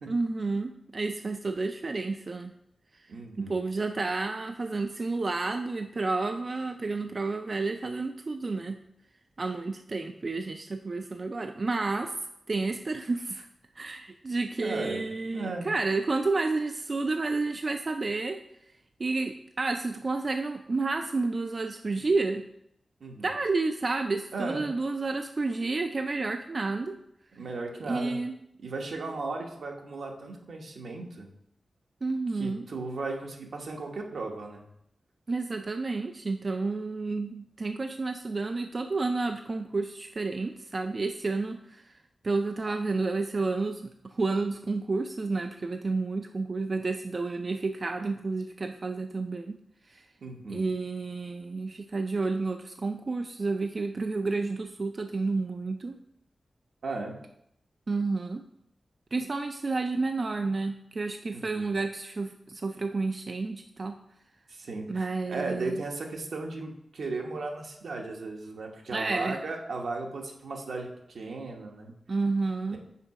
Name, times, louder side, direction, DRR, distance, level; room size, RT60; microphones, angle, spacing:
voice 1, 0.1-2.5 3.4-8.8 9.4-12.1 12.5-13.5 13.8-18.4 19.0-22.5 23.2-27.0 27.9-28.3 32.0-32.6 35.3-41.8 42.2-49.6 49.9-50.0 50.5-56.0 57.9-58.4 59.1-64.0 64.9-65.8 68.9-69.4 72.1-72.8, right 3 dB, 40° right, 6 dB, 0.3 m, -30 dB
voice 2, 3.1-3.6 14.6-15.7 23.0-23.3 24.3-24.7 27.3-28.2 28.6-31.3 32.3-34.6 50.2-50.7 56.8-57.2 61.3-61.7 64.5-71.9 72.7-72.8, right 3 dB, 75° right, 2 dB, 1.0 m, -36 dB
5.7 x 4.9 x 4.7 m, 0.78 s
wide cardioid pair, 115°, 0 cm